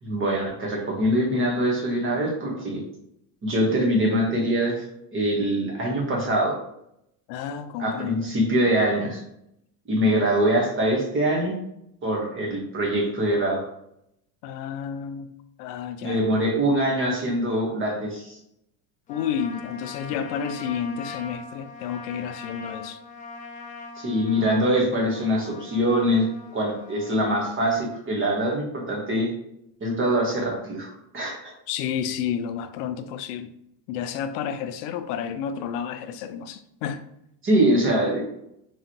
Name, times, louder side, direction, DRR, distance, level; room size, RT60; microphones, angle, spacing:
voice 1, 0.0-2.8 3.4-4.9 5.1-6.5 7.8-9.2 9.9-11.5 12.0-13.6 16.0-18.4 24.0-26.3 26.5-29.3 29.8-31.4 37.4-38.3, equal, 25° right, 1.2 m, -23 dB
voice 2, 7.3-8.4 14.4-15.3 15.6-16.6 19.1-23.0 31.7-33.5 33.9-37.0, left 8 dB, 75° left, 0.6 m, -31 dB
Trumpet, 19.1-27.8, left 4 dB, 20° left, 0.3 m, -42 dB
3.8 x 3.2 x 2.9 m
supercardioid pair, 125°, 48 cm